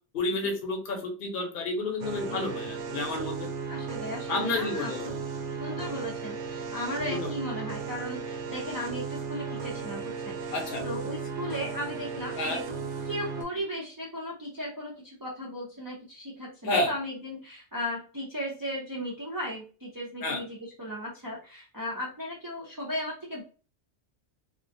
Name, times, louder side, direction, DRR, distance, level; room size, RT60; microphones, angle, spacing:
voice 1, 0.1-3.5 4.3-5.1 7.1-7.3 10.5-10.8 12.4-12.6 16.6-16.9 20.2-20.4, left 2 dB, 55° left, 1 dB, 0.8 m, -30 dB
sound 1, 2.0-13.4, right 5 dB, 90° right, 0.9 m, -36 dB
voice 2, 3.7-4.9 5.5-12.7 13.0-23.4, left 1 dB, 30° right, -5 dB, 0.4 m, -36 dB
2.4 x 2.1 x 2.6 m, 0.36 s
omnidirectional pair, 1.2 m